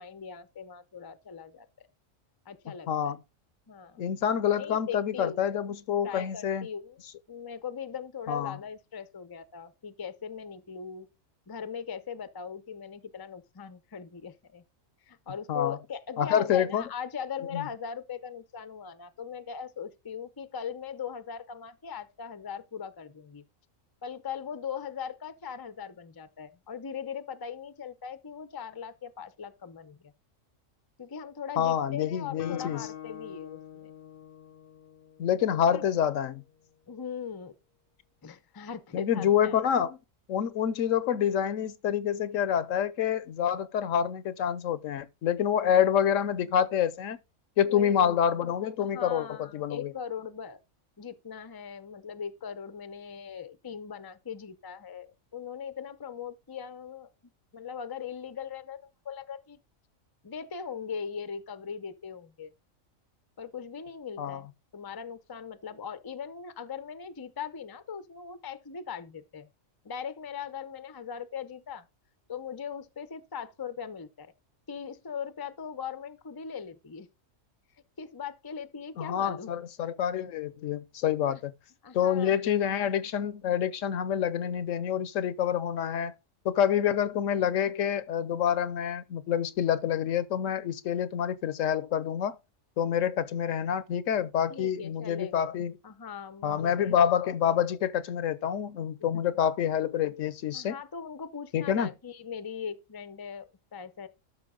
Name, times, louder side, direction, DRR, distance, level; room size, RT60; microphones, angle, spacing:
voice 1, 0.0-1.7 2.5-3.1 3.7-4.1 4.6-5.5 6.0-7.0 7.3-11.1 11.5-14.6 15.1-23.4 24.0-30.1 31.0-33.9 35.7-35.9 36.9-37.5 38.2-39.6 47.6-47.9 48.8-50.6 51.0-57.1 57.5-59.6 60.2-62.5 63.4-64.5 64.7-69.5 69.8-71.9 72.3-74.3 74.7-77.1 78.0-79.5 81.3-81.4 81.8-82.4 94.5-95.5 95.8-96.9 100.5-104.1, left 7 dB, 25° left, 0.5 m, -40 dB
voice 2, 2.9-3.2 4.0-6.7 8.3-8.6 15.5-15.8 16.2-16.8 17.5-17.6 31.6-32.8 35.2-36.4 38.9-40.0 40.3-47.2 47.6-49.9 64.2-64.4 79.0-81.5 81.9-86.1 86.4-92.4 92.8-95.7 96.4-100.8 101.5-101.9, left 9 dB, 75° left, 1.0 m, -27 dB
Guitar, 32.4-36.1, left 11 dB, 50° left, 0.8 m, -45 dB
13.0 x 5.7 x 3.8 m
omnidirectional pair, 1.4 m